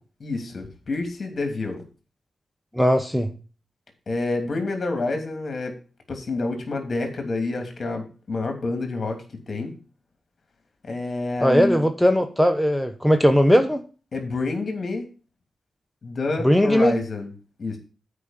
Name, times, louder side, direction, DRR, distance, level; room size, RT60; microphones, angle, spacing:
voice 1, 0.2-1.8 4.1-5.7 6.1-9.7 10.8-11.8 14.1-15.1 16.0-17.3 17.6-17.8, left 3 dB, 50° left, 5 dB, 2.8 m, -28 dB
voice 2, 2.7-3.3 11.4-13.8 16.4-17.0, equal, ahead, 6 dB, 1.1 m, -18 dB
8.4 x 5.1 x 7.4 m, 0.36 s
cardioid pair, 60°, 0 cm